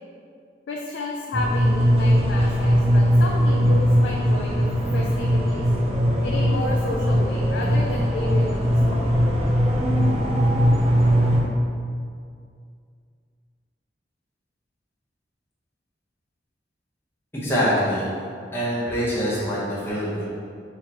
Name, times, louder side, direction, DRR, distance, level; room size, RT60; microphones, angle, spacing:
voice 1, 0.7-4.7 4.9-5.6 6.2-8.6 8.9-9.2, left 2 dB, 75° left, -1 dB, 0.4 m, -32 dB
sound 1, 1.3-11.4, equal, 35° right, 0.5 m, -20 dB
voice 2, 17.3-18.1 18.5-20.2, equal, 15° left, -10 dB, 0.9 m, -24 dB
4.4 x 3.6 x 3.0 m, 2.2 s
head